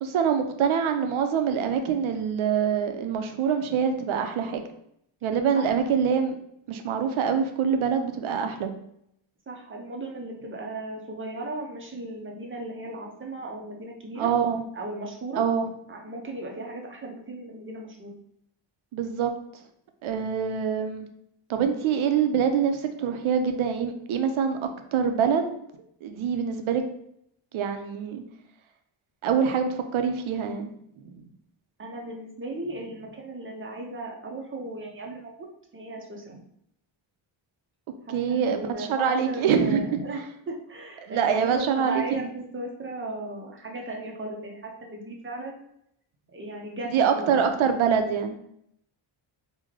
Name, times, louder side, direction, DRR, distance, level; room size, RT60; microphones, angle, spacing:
voice 1, 0.0-4.6 5.2-6.4 6.7-8.7 14.2-14.6 15.4-15.7 18.9-19.3 20.0-21.1 21.5-25.6 26.0-26.8 27.5-28.2 29.2-30.7 31.0-31.2 38.1-40.0 41.1-42.3 46.9-48.4, right 7 dB, 80° right, 7 dB, 0.6 m, -25 dB
voice 2, 9.5-14.3 14.7-15.4 15.9-18.2 31.8-35.4 35.7-36.4 38.1-45.7 46.3-47.5, right 2 dB, 25° right, 0 dB, 0.5 m, -36 dB
3.2 x 2.2 x 3.6 m, 0.73 s
wide cardioid pair, 130°, 49 cm